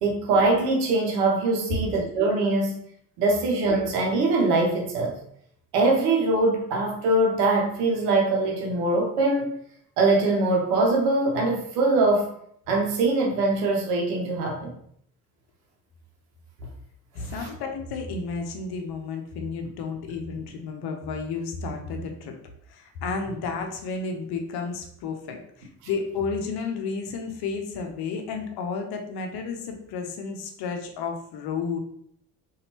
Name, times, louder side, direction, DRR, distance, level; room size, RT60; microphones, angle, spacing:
voice 1, 0.0-2.8 3.2-5.1 5.7-9.5 10.0-12.3 12.7-14.7 17.3-17.5, right 2 dB, 75° right, 0 dB, 0.9 m, -22 dB
voice 2, 17.1-22.3 22.7-31.8, left 4 dB, 55° left, 4 dB, 0.8 m, -32 dB
4.1 x 2.6 x 2.8 m, 0.68 s
figure-of-eight pair, 45°, 47 cm